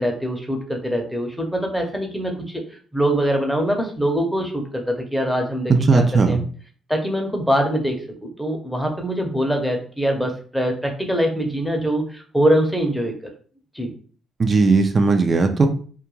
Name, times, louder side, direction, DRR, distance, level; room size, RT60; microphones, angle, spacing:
voice 1, 0.0-2.6 2.9-6.4 6.9-13.3 13.7-13.9, equal, 5° left, 2 dB, 0.7 m, -23 dB
voice 2, 5.7-6.4 14.4-15.7, right 4 dB, 40° right, 7 dB, 0.3 m, -17 dB
2.3 x 2.1 x 3.0 m, 0.43 s
cardioid pair, 90°, 0 cm